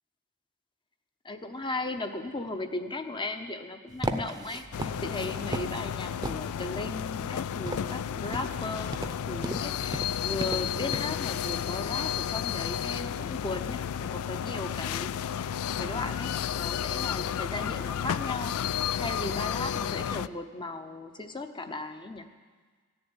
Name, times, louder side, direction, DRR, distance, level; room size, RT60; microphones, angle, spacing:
voice 1, 1.2-15.1 15.3-18.6 18.9-22.3, left 2 dB, 20° left, 8 dB, 0.8 m, -36 dB
sound 1, 3.9-11.0, right 1 dB, 15° right, 0.7 m, -37 dB
sound 2, 4.7-20.3, left 9 dB, 70° left, 0.3 m, -32 dB
15.0 x 7.2 x 9.8 m, 1.5 s
head